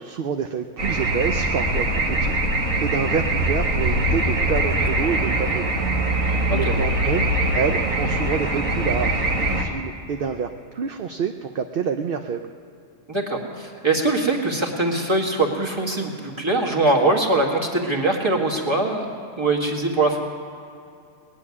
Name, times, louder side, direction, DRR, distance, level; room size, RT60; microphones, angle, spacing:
voice 1, 0.0-5.7 6.2-12.5, right 6 dB, 55° right, 6 dB, 0.7 m, -28 dB
sound 1, 0.8-9.6, right 1 dB, 90° right, 1.9 m, -22 dB
voice 2, 13.1-19.1 19.4-20.2, right 2 dB, 20° right, -1 dB, 1.8 m, -22 dB
19.5 x 7.6 x 9.7 m, 2.5 s
omnidirectional pair, 1.3 m